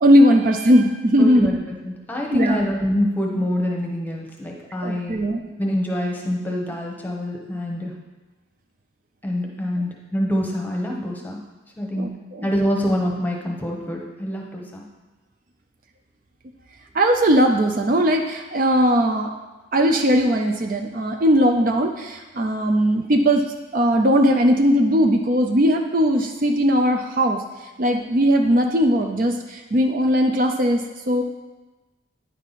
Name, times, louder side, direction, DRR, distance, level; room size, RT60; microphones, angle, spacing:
voice 1, 0.0-1.6 2.3-2.6 4.8-5.4 12.0-12.5 16.9-19.3 19.7-23.4 23.7-27.4 27.8-30.8 31.1-31.2, equal, 45° right, 3 dB, 0.5 m, -18 dB
voice 2, 1.2-5.2 5.6-7.9 9.2-11.4 11.8-12.1 12.4-14.8, equal, 10° left, -1 dB, 1.0 m, -25 dB
9.4 x 5.4 x 4.1 m, 1.2 s
head